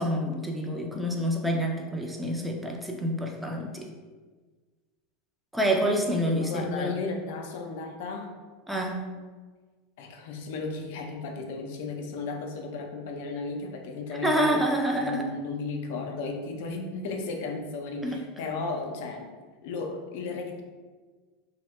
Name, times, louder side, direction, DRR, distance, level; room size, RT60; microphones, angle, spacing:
voice 1, 0.0-3.9 5.5-7.0 8.7-9.1 14.2-15.3 18.0-18.2, equal, 5° right, 0 dB, 0.5 m, -27 dB
voice 2, 6.3-8.3 10.0-14.5 14.9-19.3 19.6-20.6, left 3 dB, 65° left, 3 dB, 0.4 m, -34 dB
2.7 x 2.1 x 3.0 m, 1.4 s
hypercardioid pair, 90°, 0 cm